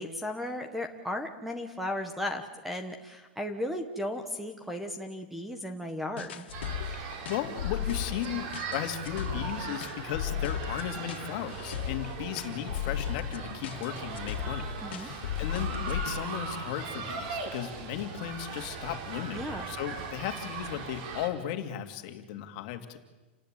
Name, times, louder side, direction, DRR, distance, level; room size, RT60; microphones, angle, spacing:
voice 1, 0.0-6.5 14.8-15.1 19.3-19.7, left 1 dB, ahead, 7 dB, 1.3 m, -35 dB
sound 1, 6.2-16.2, left 9 dB, 80° left, 2.5 m, -35 dB
sound 2, 6.5-21.3, right 5 dB, 40° right, 4.1 m, -39 dB
voice 2, 7.3-23.0, left 11 dB, 40° left, 6 dB, 2.5 m, -36 dB
29.0 x 19.0 x 9.1 m, 1.2 s
supercardioid pair, 170°, 6 cm